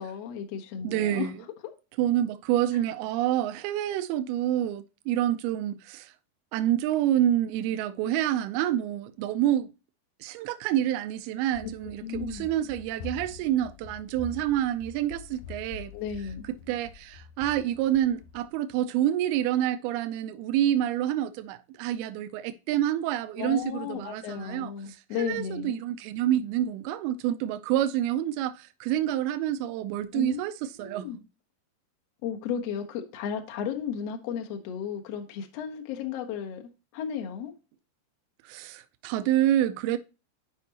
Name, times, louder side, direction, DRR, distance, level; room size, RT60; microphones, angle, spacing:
voice 1, 0.0-1.3 12.0-12.5 15.9-16.5 23.4-25.8 30.1-30.4 30.7-31.2 32.2-37.5, left 8 dB, 65° left, 1.7 m, -34 dB
voice 2, 0.8-1.3 2.0-6.1 6.5-9.7 10.2-15.9 16.7-24.7 25.2-30.5 30.8-31.1 38.4-40.0, right 12 dB, 85° right, 2.5 m, -27 dB
Run, 11.5-18.5, left 7 dB, 80° left, 2.1 m, -45 dB
11.0 x 5.2 x 2.8 m
omnidirectional pair, 4.4 m